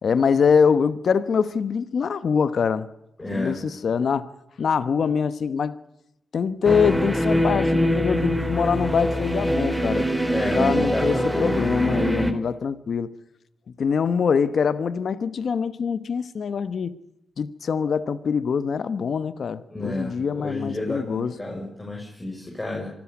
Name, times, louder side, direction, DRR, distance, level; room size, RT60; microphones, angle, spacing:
voice 1, 0.0-2.9 3.3-4.3 4.6-5.8 6.3-10.1 10.5-13.1 13.8-17.0 17.4-21.3, left 6 dB, 70° left, 1.1 m, -24 dB
voice 2, 3.2-3.6 10.3-11.7 19.7-22.9, left 2 dB, 25° left, 6.4 m, -30 dB
sound 1, 6.6-12.3, equal, 5° right, 3.6 m, -23 dB
25.0 x 13.5 x 9.7 m
cardioid pair, 55°, 0 cm